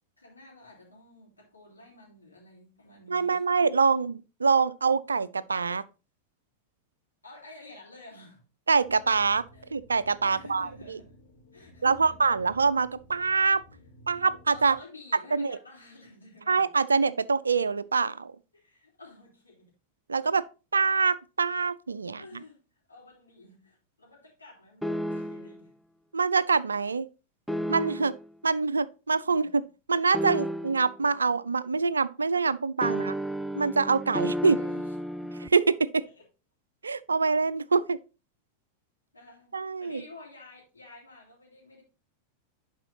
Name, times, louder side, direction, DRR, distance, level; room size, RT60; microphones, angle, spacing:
voice 1, 0.2-3.4 7.2-8.4 9.5-9.7 10.2-11.1 11.5-12.2 13.7-13.9 14.5-16.7 18.5-19.7 22.0-25.7 29.2-29.5 32.8-33.1 34.1-35.4 36.0-36.2 39.1-39.5 39.8-41.8, left 2 dB, 80° left, 3.5 m, -51 dB
voice 2, 3.1-5.8 8.7-9.4 9.7-11.0 11.8-13.6 14.1-14.8 15.3-15.6 16.5-18.3 20.1-20.4 20.7-22.2 26.1-27.1 27.7-28.1 28.4-29.6 29.9-33.1 33.6-34.6 35.5-36.0 36.8-38.0 39.5-40.0, right 4 dB, 75° right, 0.3 m, -25 dB
sound 1, 8.8-14.8, equal, 55° left, 3.6 m, -54 dB
sound 2, 24.8-25.6 27.5-28.3 30.1-31.0 32.8-35.5, equal, ahead, 0.3 m, -32 dB
11.0 x 4.8 x 2.8 m
figure-of-eight pair, 90°, 0 cm